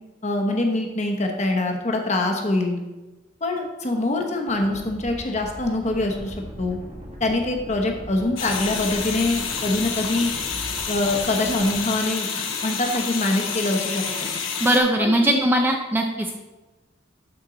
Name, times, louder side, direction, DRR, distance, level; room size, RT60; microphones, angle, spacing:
voice 1, 0.2-2.8 3.4-6.8 7.2-10.3 10.9-14.3 15.0-15.4, left 2 dB, 35° left, 3 dB, 1.0 m, -24 dB
sound 1, 4.5-11.8, equal, 30° right, 1.4 m, -39 dB
sound 2, 8.4-14.8, left 6 dB, 80° left, 1.1 m, -29 dB
voice 2, 14.6-16.4, right 1 dB, 10° right, 3 dB, 0.4 m, -20 dB
11.5 x 4.4 x 3.9 m, 1.1 s
head